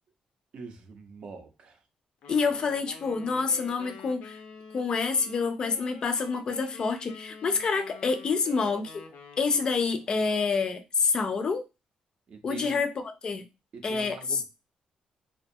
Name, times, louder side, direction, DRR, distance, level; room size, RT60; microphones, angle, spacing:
voice 1, 0.5-1.8 12.3-12.8 13.7-14.4, right 4 dB, 45° right, 0.5 m, -43 dB
sound 1, 2.2-10.2, left 5 dB, 85° left, 0.5 m, -47 dB
voice 2, 2.3-4.4 4.7-9.0 9.4-11.7 12.4-12.9 13.2-13.4 13.8-14.2, left 4 dB, 35° left, 0.4 m, -27 dB
2.5 x 2.3 x 2.6 m
cardioid pair, 175°, 2 cm